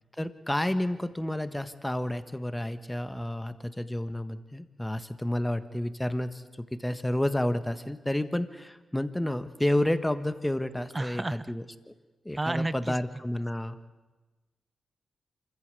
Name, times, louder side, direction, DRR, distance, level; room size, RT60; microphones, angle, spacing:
voice 1, 0.2-11.6 12.2-13.8, left 1 dB, 10° left, 11 dB, 1.5 m, -30 dB
voice 2, 10.9-11.5 12.4-13.0, right 2 dB, 30° right, 17 dB, 0.8 m, -31 dB
26.0 x 14.5 x 8.3 m, 1.2 s
supercardioid pair, 45°, 0 cm